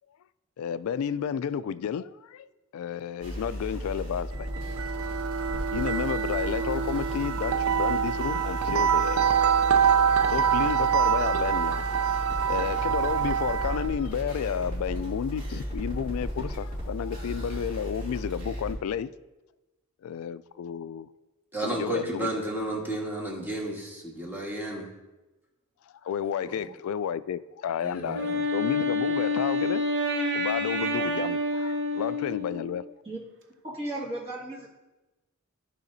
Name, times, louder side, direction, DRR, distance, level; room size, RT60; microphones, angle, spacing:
voice 1, 0.6-2.5 2.7-4.5 5.7-9.3 10.3-11.8 12.5-19.1 20.0-21.1 21.6-22.3 26.0-29.8 30.3-32.8, left 8 dB, 75° left, 16 dB, 0.3 m, -31 dB
sound 1, 3.2-18.8, equal, 40° right, 2.7 m, -35 dB
sound 2, 4.4-13.9, right 7 dB, 80° right, 0.4 m, -25 dB
voice 2, 21.5-24.9 26.4-26.6 27.8-28.4, right 1 dB, 10° right, -2 dB, 1.5 m, -32 dB
Wind instrument woodwind instrument, 28.1-32.8, left 1 dB, 60° right, 0.9 m, -28 dB
voice 3, 33.6-34.7, right 1 dB, 25° right, -7 dB, 1.9 m, -35 dB
13.5 x 4.9 x 2.7 m, 1.1 s
head